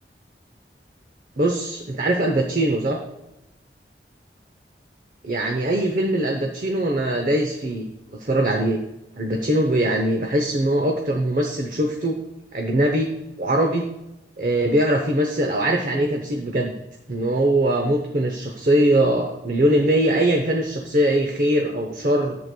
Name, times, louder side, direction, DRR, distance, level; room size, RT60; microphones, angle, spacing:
voice 1, 1.4-3.0 5.2-7.9 8.1-8.8 9.2-12.2 12.5-13.1 13.4-13.9 14.4-16.7 17.1-22.4, right 1 dB, 50° right, 2 dB, 0.7 m, -21 dB
11.0 x 7.7 x 2.2 m, 0.93 s
head